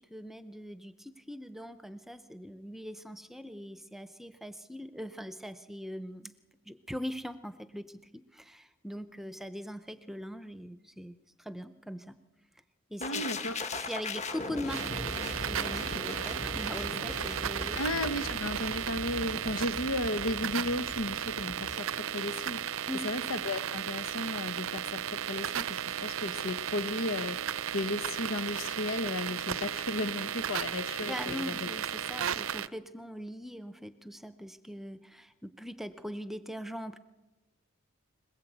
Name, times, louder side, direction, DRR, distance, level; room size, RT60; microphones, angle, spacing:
voice 1, 0.0-6.3 6.7-12.2 12.9-13.2 13.8-17.8 22.9-23.1 31.0-37.0, equal, ahead, 0.7 m, -41 dB
voice 2, 13.0-13.6 17.7-22.6 23.0-31.8 32.1-32.2, left 2 dB, 90° left, 1.2 m, -35 dB
sound 1, 13.0-22.9 23.2-23.4, left 2 dB, 35° left, 1.5 m, -40 dB
sound 2, 14.7-32.7, right 9 dB, 90° right, 0.7 m, -35 dB
21.0 x 21.0 x 8.1 m
head